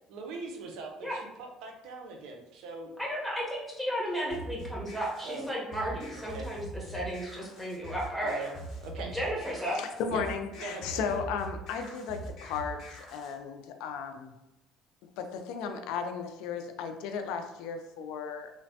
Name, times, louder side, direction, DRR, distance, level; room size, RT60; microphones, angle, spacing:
voice 1, 0.1-2.9 5.2-5.5 6.1-6.5 8.2-8.5 8.8-9.2 10.1-10.2 10.6-11.0, right 3 dB, 80° right, 2 dB, 0.5 m, -41 dB
voice 2, 3.0-8.4 9.1-9.8, equal, 5° right, -5 dB, 1.1 m, -34 dB
sound 1, 4.3-13.3, right 1 dB, 60° left, 0.8 m, -43 dB
voice 3, 9.7-14.3 15.2-18.5, left 6 dB, 80° left, 6 dB, 0.3 m, -35 dB
3.1 x 2.1 x 2.7 m, 0.95 s
cardioid pair, 100°, 0 cm